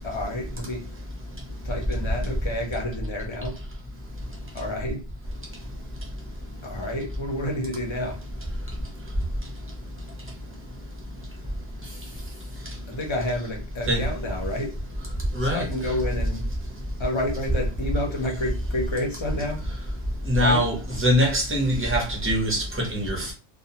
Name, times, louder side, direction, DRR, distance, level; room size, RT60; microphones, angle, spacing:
voice 1, 0.0-0.8 1.6-3.6 4.5-5.0 6.6-8.2 12.9-14.7 15.4-16.4 17.0-19.6 20.4-20.6, left 1 dB, 35° left, 0.4 m, -29 dB
voice 2, 15.3-15.7 20.3-23.3, equal, 15° right, 0.5 m, -23 dB
2.3 x 2.2 x 2.8 m
omnidirectional pair, 1.3 m